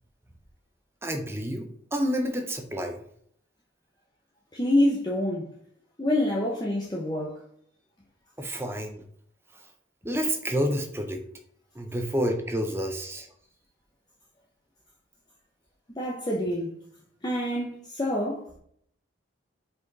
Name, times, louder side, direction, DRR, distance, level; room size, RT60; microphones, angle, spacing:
voice 1, 1.0-3.0 8.4-9.0 10.0-11.2 11.7-13.3, equal, 10° right, 0.8 m, -29 dB
voice 2, 4.5-5.5 6.0-7.4 15.9-16.8 17.2-18.5, left 1 dB, 20° left, 0.8 m, -27 dB
5.0 x 5.0 x 4.0 m
head